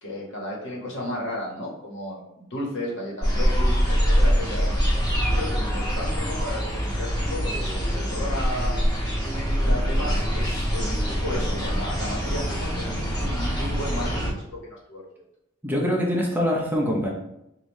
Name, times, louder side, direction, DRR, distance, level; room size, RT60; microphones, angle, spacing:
voice 1, 0.0-4.8 5.2-8.8 9.6-15.0, left 1 dB, 60° left, -3 dB, 1.4 m, -34 dB
sound 1, 3.2-14.3, equal, 20° left, 1.3 m, -24 dB
voice 2, 15.6-17.1, equal, 10° right, -2 dB, 0.6 m, -24 dB
5.2 x 2.6 x 3.1 m, 0.82 s
head